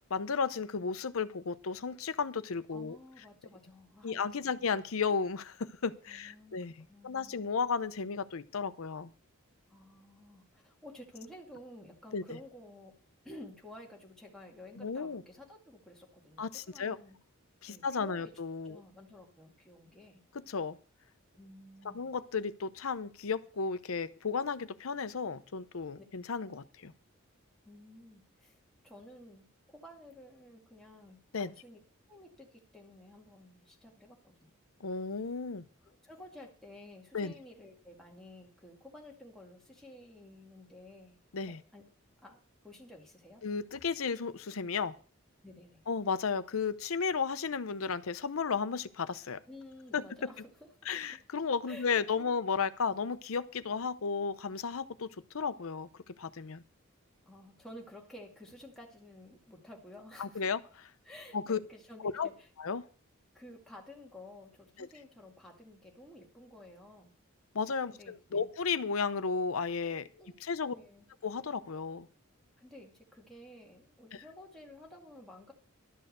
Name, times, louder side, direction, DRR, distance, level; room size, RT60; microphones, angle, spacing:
voice 1, 0.1-3.0 4.0-6.7 7.0-9.1 12.1-12.4 14.8-15.2 16.4-17.0 17.6-18.8 20.5-20.8 21.9-26.9 31.3-31.5 34.8-35.6 37.1-37.3 41.3-41.6 43.4-44.9 45.9-49.4 49.9-50.0 50.9-55.1 55.3-55.9 56.2-56.6 60.2-60.6 61.3-61.6 62.0-62.3 62.6-62.8 64.8-64.9 67.5-70.1 70.4-70.7 71.2-72.1, left 5 dB, 75° left, 14 dB, 0.7 m, -34 dB
voice 2, 2.7-4.7 6.1-7.4 9.7-13.0 13.2-17.2 17.7-18.3 18.6-20.2 21.4-22.1 25.9-26.0 27.6-31.8 32.1-34.5 35.8-41.2 41.5-41.8 42.2-43.4 45.4-45.8 49.5-51.1 51.7-52.4 57.2-60.5 61.0-62.5 63.3-67.1 67.9-68.5 70.1-70.3 70.7-71.0 72.6-75.5, left 1 dB, ahead, -2 dB, 2.2 m, -52 dB
12.0 x 6.5 x 6.7 m, 0.40 s
head